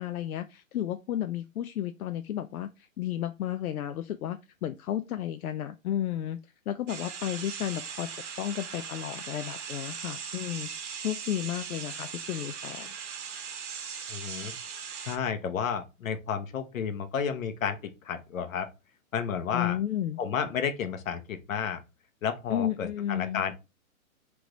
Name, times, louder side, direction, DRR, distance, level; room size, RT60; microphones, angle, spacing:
voice 1, 0.0-6.4 6.7-8.1 8.4-12.9 19.5-20.2 22.5-23.4, left 11 dB, 85° left, 0.5 m, -33 dB
sound 1, 6.9-15.2, right 7 dB, 55° right, 0.9 m, -39 dB
voice 2, 14.1-14.5 15.0-18.7 19.1-19.8 20.2-21.8 22.2-23.5, left 7 dB, 65° left, 1.0 m, -31 dB
3.4 x 3.3 x 3.8 m
hypercardioid pair, 160°, 43 cm